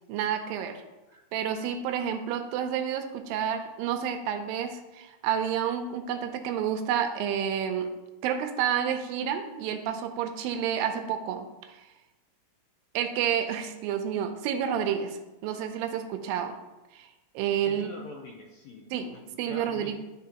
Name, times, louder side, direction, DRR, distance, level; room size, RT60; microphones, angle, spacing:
voice 1, 0.1-0.8 1.3-7.9 8.2-11.8 12.9-16.6 16.9-17.1 17.4-17.9 18.9-19.1 19.4-20.0, right 8 dB, 85° right, 6 dB, 2.3 m, -30 dB
voice 2, 17.6-20.0, left 3 dB, 85° left, -1 dB, 1.5 m, -45 dB
11.0 x 4.0 x 2.9 m, 1.1 s
omnidirectional pair, 4.1 m